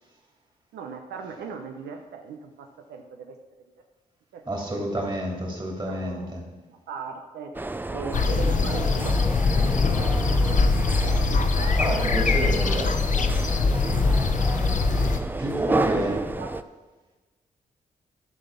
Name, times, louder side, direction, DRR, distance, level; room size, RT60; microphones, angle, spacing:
voice 1, 0.7-3.4 4.3-4.4 5.9-6.4 6.7-7.5 7.9-11.8 15.3-16.5, right 5 dB, 85° right, 5 dB, 0.6 m, -39 dB
voice 2, 4.5-6.5 11.7-13.0 15.4-16.2, right 1 dB, 25° right, 0 dB, 2.8 m, -29 dB
sound 1, 7.5-16.6, right 2 dB, 10° right, 0.4 m, -31 dB
sound 2, 8.1-15.2, left 4 dB, 50° left, 0.8 m, -22 dB
10.5 x 4.1 x 6.6 m, 1.3 s
supercardioid pair, 50°, 17 cm